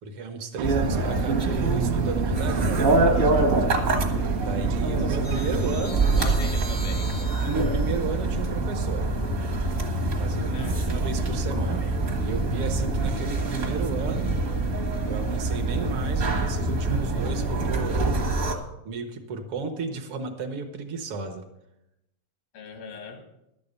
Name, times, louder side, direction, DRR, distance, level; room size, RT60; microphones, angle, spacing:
voice 1, 0.0-2.8 4.0-4.1 4.4-6.4 7.4-9.1 10.1-11.9 12.2-14.4 15.1-18.2 18.8-21.5, right 4 dB, 70° right, 6 dB, 1.3 m, -33 dB
sound 1, 0.6-18.5, right 2 dB, 55° right, 0.9 m, -25 dB
sound 2, 0.6-7.8, right 12 dB, 85° right, 2.3 m, -35 dB
voice 2, 6.2-7.1 10.5-11.0 22.5-23.3, left 4 dB, 90° left, 5 dB, 3.3 m, -39 dB
11.5 x 8.6 x 6.7 m, 0.87 s
omnidirectional pair, 3.9 m